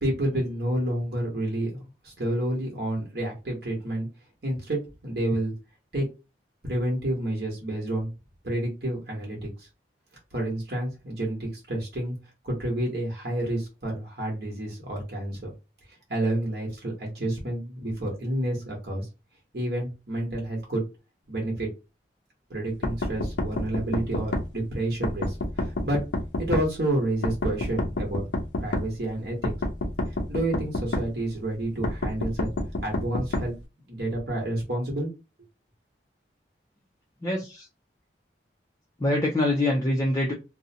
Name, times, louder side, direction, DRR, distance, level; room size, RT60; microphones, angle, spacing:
voice 1, 0.0-4.1 4.4-5.5 5.9-6.1 6.6-8.1 8.4-9.7 10.3-12.2 12.4-15.5 16.1-19.1 19.5-20.8 21.3-21.7 22.5-26.0 26.4-28.2 28.6-29.5 30.3-32.5 32.8-33.6 33.9-35.1, right 1 dB, 65° right, -1 dB, 1.0 m, -29 dB
sound 1, 22.8-24.5 25.0-26.7 27.2-28.9 29.4-31.1 31.8-33.5, left 2 dB, 90° left, 0.6 m, -28 dB
voice 2, 37.2-37.7 39.0-40.3, left 1 dB, 20° left, -1 dB, 0.4 m, -24 dB
2.5 x 2.1 x 2.6 m, 0.28 s
head